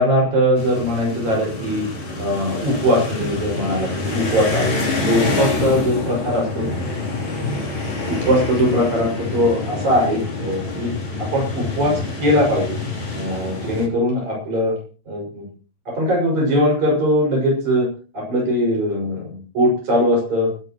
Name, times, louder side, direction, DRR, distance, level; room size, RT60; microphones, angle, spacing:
voice 1, 0.0-1.9 2.2-4.7 5.1-6.7 8.1-10.9 11.2-12.8 13.1-14.7 15.1-15.5 15.9-17.9 18.1-20.5, equal, 65° right, -1 dB, 7.4 m, -20 dB
sound 1, 0.6-13.9, left 3 dB, 40° left, 4.3 m, -26 dB
28.5 x 11.0 x 3.1 m, 0.39 s
omnidirectional pair, 3.5 m